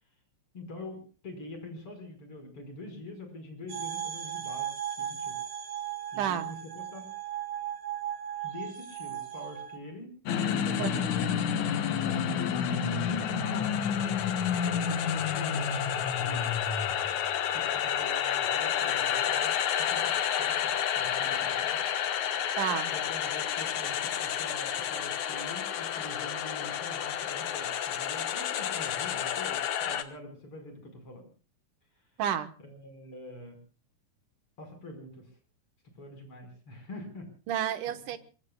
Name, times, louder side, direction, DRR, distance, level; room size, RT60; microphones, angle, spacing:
voice 1, 0.5-5.4 6.1-7.1 8.4-14.3 14.6-15.7 16.2-16.4 17.5-20.1 20.4-20.5 20.9-21.8 22.9-31.3 32.6-33.6 34.6-35.3 36.0-37.3 38.1-38.2, left 1 dB, 35° left, 6 dB, 6.0 m, -45 dB
sound 1, 3.7-9.8, right 10 dB, 45° right, 2.9 m, -36 dB
voice 2, 6.2-6.5 10.8-11.0 22.6-22.9 32.2-32.5 37.5-38.2, right 10 dB, 70° right, 10 dB, 2.7 m, -30 dB
sound 2, 10.3-30.0, left 8 dB, 65° left, 2.5 m, -30 dB
26.5 x 23.0 x 2.4 m, 0.37 s
omnidirectional pair, 4.0 m